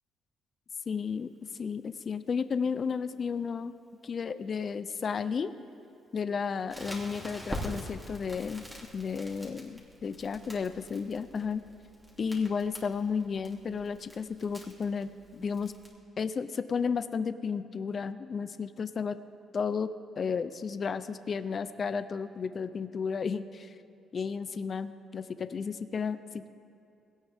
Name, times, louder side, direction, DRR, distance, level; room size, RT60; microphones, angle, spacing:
voice 1, 0.9-1.3 1.6-3.7 4.0-5.5 6.1-8.6 8.9-11.6 12.2-15.7 16.2-19.2 19.5-19.9 20.2-23.7 24.1-26.5, left 6 dB, 45° left, 12 dB, 0.6 m, -33 dB
Crackle, 6.7-15.9, equal, 10° right, 3.0 m, -45 dB
20.0 x 17.0 x 3.7 m, 2.7 s
cardioid pair, 90°, 0 cm